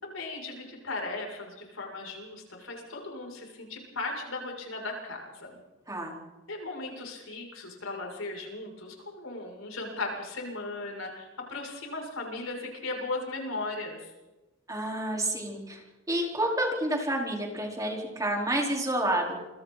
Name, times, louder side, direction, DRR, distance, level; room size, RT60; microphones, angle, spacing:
voice 1, 0.0-5.6 6.5-14.1, left 2 dB, 85° left, 0 dB, 7.4 m, -37 dB
voice 2, 14.7-15.8 16.1-19.4, right 1 dB, 15° right, 0 dB, 4.7 m, -29 dB
28.0 x 24.0 x 4.3 m, 1.1 s
head